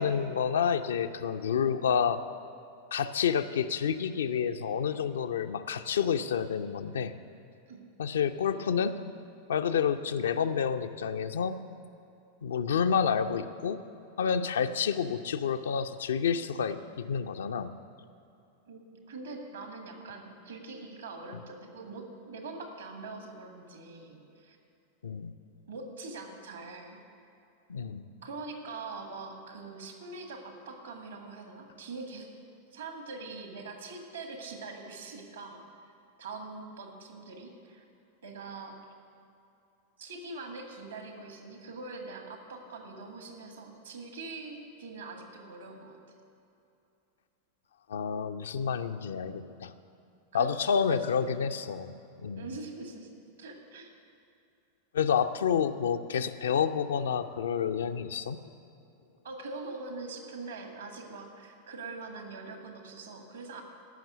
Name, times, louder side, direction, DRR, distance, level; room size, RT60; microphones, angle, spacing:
voice 1, 0.0-2.2 2.9-7.1 8.0-8.9 9.5-11.5 12.4-13.8 14.2-17.7 25.0-25.3 27.7-28.1 47.9-49.7 50.3-51.9 52.2-52.5 54.9-58.4, left 7 dB, 65° left, 9 dB, 0.5 m, -29 dB
voice 2, 19.1-24.6 25.7-27.0 28.2-32.3 32.7-35.9 36.2-37.8 38.2-38.8 40.0-46.0 50.3-51.4 52.4-53.1 53.4-53.9 59.2-63.6, right 3 dB, 70° right, 4 dB, 1.7 m, -43 dB
14.0 x 6.0 x 8.2 m, 2.7 s
figure-of-eight pair, 90°, 0 cm